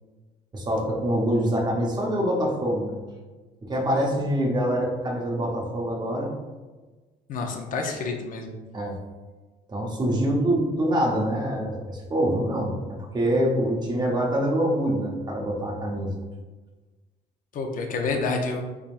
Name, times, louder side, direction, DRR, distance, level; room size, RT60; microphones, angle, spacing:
voice 1, 0.5-3.0 3.6-6.3 8.7-9.0 9.7-16.1, equal, 25° right, -1 dB, 0.9 m, -25 dB
voice 2, 7.3-8.5 17.5-18.6, left 3 dB, 55° left, 3 dB, 0.7 m, -28 dB
4.1 x 3.5 x 2.5 m, 1.3 s
cardioid pair, 110°, 17 cm